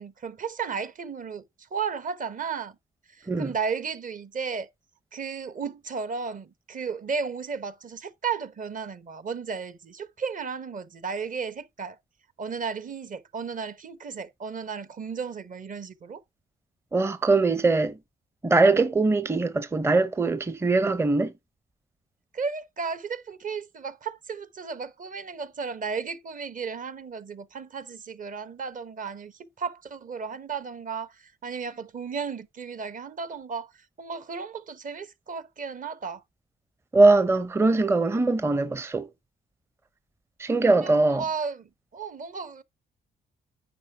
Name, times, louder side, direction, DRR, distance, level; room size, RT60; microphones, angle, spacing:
voice 1, 0.0-1.4 1.7-2.7 3.2-4.7 5.1-12.0 12.4-16.2 22.3-31.1 31.4-33.7 34.0-36.2 40.8-41.6 41.9-42.6, right 5 dB, 40° right, 0.9 m, -34 dB
voice 2, 3.2-3.6 16.9-18.0 18.4-21.3 36.9-39.1 40.4-41.3, right 3 dB, 15° right, 0.6 m, -22 dB
9.6 x 4.7 x 4.4 m
cardioid pair, 90°, 20 cm